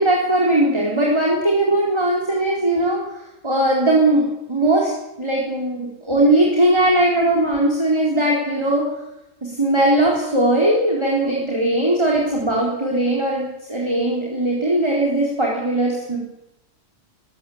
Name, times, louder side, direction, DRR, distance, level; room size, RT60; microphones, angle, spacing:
voice 1, 0.0-3.0 3.4-4.9 5.2-8.9 9.4-16.2, right 1 dB, 20° right, -3 dB, 4.2 m, -19 dB
20.5 x 17.0 x 8.8 m, 0.90 s
omnidirectional pair, 1.4 m